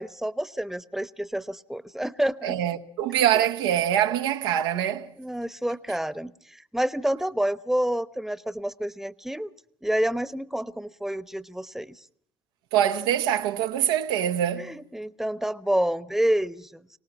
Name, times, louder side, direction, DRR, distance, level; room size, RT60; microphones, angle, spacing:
voice 1, 0.0-2.6 5.2-6.3 6.7-9.5 9.8-11.9 14.6-16.8, right 1 dB, 5° right, 1.1 m, -28 dB
voice 2, 2.4-5.1 12.7-14.7, right 10 dB, 90° right, 1.2 m, -24 dB
24.0 x 18.5 x 7.2 m
hypercardioid pair, 55°, 12 cm